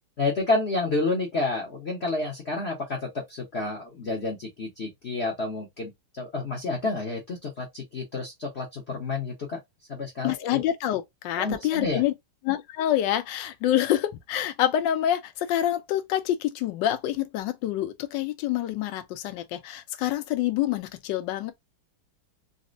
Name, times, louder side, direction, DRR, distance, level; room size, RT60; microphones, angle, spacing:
voice 1, 0.2-5.9 6.2-9.6 9.9-10.6 11.4-12.0, left 3 dB, 50° left, 0.8 m, -29 dB
voice 2, 10.2-12.1 12.4-21.5, left 12 dB, 70° left, 1.1 m, -27 dB
4.1 x 2.1 x 2.5 m
omnidirectional pair, 2.3 m